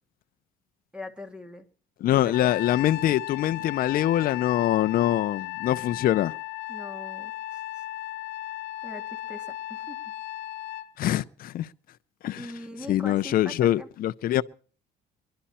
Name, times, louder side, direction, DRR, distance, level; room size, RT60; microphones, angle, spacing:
voice 1, 0.9-1.7 2.2-2.5 6.7-7.8 8.8-10.0 12.4-13.9, left 2 dB, 5° right, 2.1 m, -41 dB
voice 2, 2.0-6.3 11.0-11.7 12.2-12.4 12.9-14.4, left 13 dB, 60° left, 0.6 m, -24 dB
Trumpet, 2.3-10.9, left 16 dB, 90° left, 1.0 m, -36 dB
22.5 x 11.5 x 4.3 m
cardioid pair, 110°, 17 cm